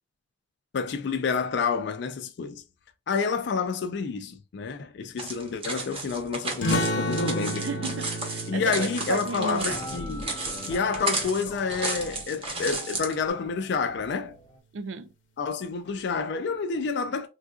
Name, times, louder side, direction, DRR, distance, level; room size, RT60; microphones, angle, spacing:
voice 1, 0.7-2.6 3.1-7.7 8.5-10.4 10.6-14.4 15.4-17.3, left 5 dB, 65° left, 0.4 m, -29 dB
sound 1, 5.2-13.1, right 3 dB, 30° right, 0.8 m, -33 dB
sound 2, 6.6-11.8, equal, 90° left, 0.8 m, -32 dB
voice 2, 7.5-9.8 14.7-15.1, right 4 dB, 85° right, 0.5 m, -34 dB
sound 3, 9.6-14.6, left 1 dB, 25° left, 0.7 m, -42 dB
3.7 x 2.4 x 2.3 m
head